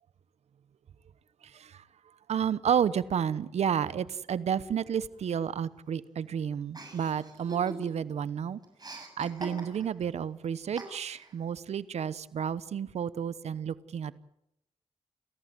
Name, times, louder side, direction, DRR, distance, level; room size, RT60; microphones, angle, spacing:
voice 1, 1.5-1.8 2.3-8.6 8.9-14.1, right 8 dB, 85° right, 0.9 m, -31 dB
Chuckle chortle, 6.7-8.1 8.4-10.0 10.8-11.3, right 2 dB, 35° right, 7.2 m, -43 dB
30.0 x 14.5 x 7.8 m
cardioid pair, 55°, 11 cm